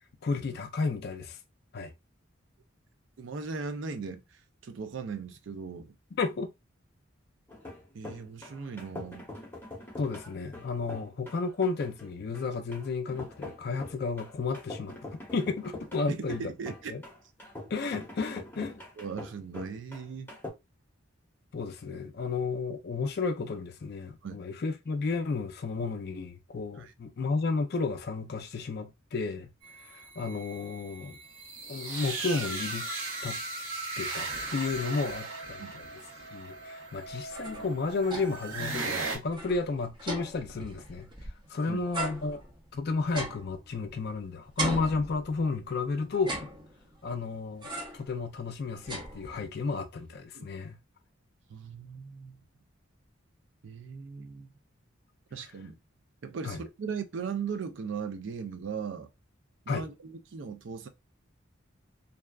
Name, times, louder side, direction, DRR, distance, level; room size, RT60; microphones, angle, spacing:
voice 1, 0.2-1.4 1.7-1.9 6.2-6.5 10.0-16.5 16.9-17.0 17.7-18.8 21.5-29.5 29.8-31.2 31.7-32.9 33.2-33.4 34.0-36.0 36.3-41.1 41.5-42.4 42.7-46.5 47.0-47.7 47.9-50.8 56.4-56.6 59.7-59.8, left 4 dB, 50° left, 0.4 m, -32 dB
voice 2, 3.2-5.9 7.9-9.3 16.1-16.9 19.0-20.3 24.2-24.4 26.8-26.9 35.6-35.7 41.7-41.8 50.3-50.5 51.5-52.4 53.6-54.5 55.3-55.8 56.2-59.1 59.7-60.9, right 5 dB, 60° right, 0.4 m, -38 dB
sound 1, 7.5-20.5, left 2 dB, 10° left, 0.9 m, -44 dB
sound 2, 29.6-39.2, right 3 dB, 80° right, 0.8 m, -37 dB
sound 3, 37.1-38.5 38.9-39.0 39.3-41.5 41.9-44.2 44.6-45.7 46.1-47.0 47.6-48.1 48.5-49.6, right 1 dB, 25° right, 0.7 m, -38 dB
2.7 x 2.2 x 2.3 m
head